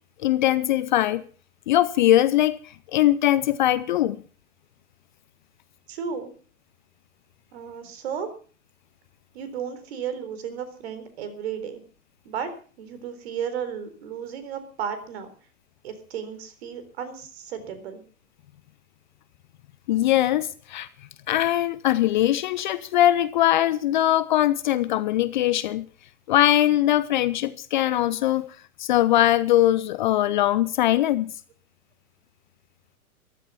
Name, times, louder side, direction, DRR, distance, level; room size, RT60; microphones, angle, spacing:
voice 1, 0.2-1.2 1.7-2.6 2.9-4.2 19.9-20.9 21.3-25.8 26.3-31.3, left 13 dB, 35° left, 0.6 m, -21 dB
voice 2, 5.9-6.3 7.5-8.3 9.3-11.8 12.2-12.5 12.8-15.3 15.8-18.0, right 7 dB, 45° right, 3.9 m, -34 dB
14.5 x 13.0 x 5.7 m
figure-of-eight pair, 115°, 43 cm